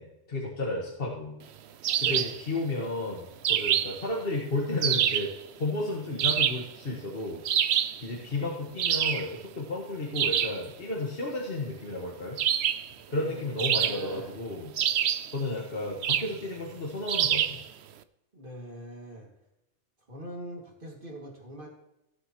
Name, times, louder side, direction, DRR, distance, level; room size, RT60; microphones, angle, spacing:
voice 1, 0.0-1.4 2.0-5.3 5.6-7.4 8.0-12.4 13.1-14.7 15.3-17.6, left 2 dB, 50° left, -2 dB, 1.8 m, -33 dB
sound 1, 1.8-2.4 3.4-4.0 4.8-5.3 6.2-6.7 7.4-8.0 8.8-9.3 10.1-10.6 12.4-12.9 13.6-14.3 14.8-15.3 16.0-16.4 17.1-17.6, right 9 dB, 65° right, 0.9 m, -26 dB
voice 2, 2.0-2.3 13.2-14.4 18.3-19.3 20.1-21.7, equal, 45° right, -1 dB, 2.6 m, -42 dB
17.5 x 7.3 x 3.1 m, 0.89 s
omnidirectional pair, 1.2 m